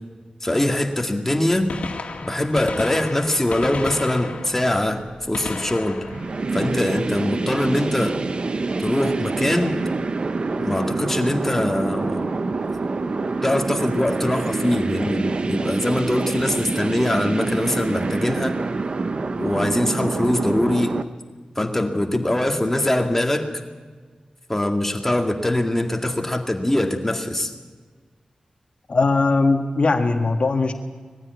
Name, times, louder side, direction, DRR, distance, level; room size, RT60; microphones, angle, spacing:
voice 1, 0.4-1.7 2.2-5.0 5.3-6.0 6.5-8.2 8.8-9.8 10.6-12.3 13.4-18.5 19.4-20.9 21.6-23.5 24.5-27.5, left 1 dB, 15° left, 4 dB, 2.1 m, -22 dB
Gunshot gunfire, 1.7-7.4 9.3-9.5 10.5-10.6 12.2-12.3 13.7-13.8 14.0-14.1, left 3 dB, 70° left, 2.2 m, -34 dB
sound 1, 6.1-21.0, right 3 dB, 50° right, 0.9 m, -26 dB
voice 2, 28.9-30.7, left 3 dB, 50° left, 4 dB, 1.6 m, -19 dB
20.5 x 15.0 x 9.5 m, 1.5 s
wide cardioid pair, 105°, 2 cm